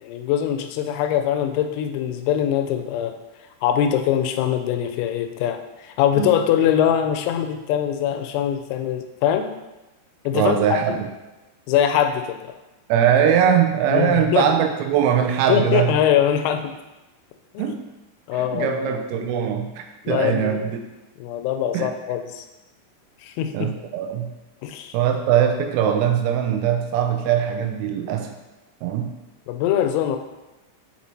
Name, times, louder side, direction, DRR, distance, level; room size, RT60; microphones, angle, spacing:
voice 1, 0.0-3.1 3.6-9.5 10.3-10.6 10.9-11.0 11.7-12.4 13.9-14.5 15.5-16.7 17.5-17.7 18.3-19.0 20.1-20.7 21.2-22.4 23.2-23.7 24.6-25.0 29.5-30.2, left 10 dB, 90° left, 7 dB, 3.3 m, -22 dB
voice 2, 10.3-11.1 12.9-15.9 17.6-17.8 18.4-20.9 21.7-21.9 23.5-24.3 24.9-28.3 28.8-29.1, right 9 dB, 85° right, 4 dB, 3.2 m, -21 dB
7.9 x 4.1 x 2.9 m, 1.0 s
omnidirectional pair, 6.0 m